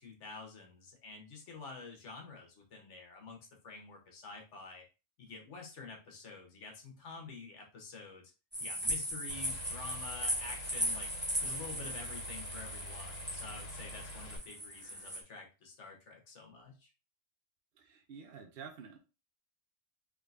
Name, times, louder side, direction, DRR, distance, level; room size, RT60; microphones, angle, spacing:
voice 1, 0.0-4.8 5.2-8.3 8.6-11.1 11.4-16.9, left 4 dB, 65° left, 2 dB, 1.3 m, -49 dB
sound 1, 8.5-15.2, equal, 10° right, 0.7 m, -38 dB
sound 2, 9.3-14.4, equal, 85° left, 1.2 m, -47 dB
voice 2, 17.8-19.0, right 6 dB, 55° right, 4 dB, 0.8 m, -49 dB
3.7 x 3.2 x 2.4 m, 0.30 s
omnidirectional pair, 1.3 m